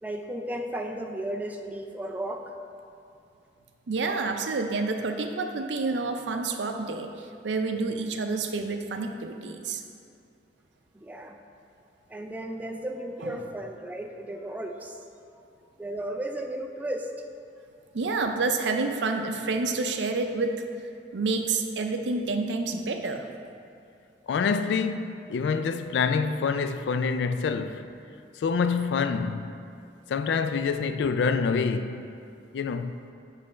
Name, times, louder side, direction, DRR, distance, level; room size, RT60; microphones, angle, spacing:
voice 1, 0.0-2.5 10.9-11.4 12.1-15.4 15.8-17.1, right 1 dB, 10° right, 0.4 m, -35 dB
voice 2, 3.9-7.1 7.4-9.8 13.2-13.3 17.9-20.7 21.1-23.2, right 3 dB, 85° right, 0.5 m, -28 dB
voice 3, 24.3-27.8 28.4-29.5 30.1-32.1 32.5-32.9, left 5 dB, 70° left, 0.3 m, -26 dB
7.4 x 3.2 x 5.5 m
head